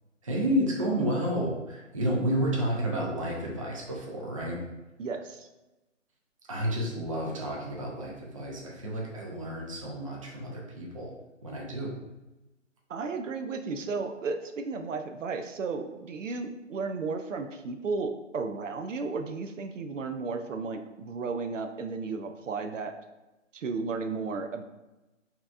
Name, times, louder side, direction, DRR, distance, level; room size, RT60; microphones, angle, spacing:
voice 1, 0.2-4.6 6.5-11.1 11.4-12.0, equal, 25° right, -2 dB, 0.5 m, -31 dB
voice 2, 5.0-5.5 12.9-22.9 23.5-24.6, right 4 dB, 75° right, 6 dB, 0.6 m, -34 dB
5.5 x 2.9 x 2.4 m, 1.0 s
hypercardioid pair, 160°, 38 cm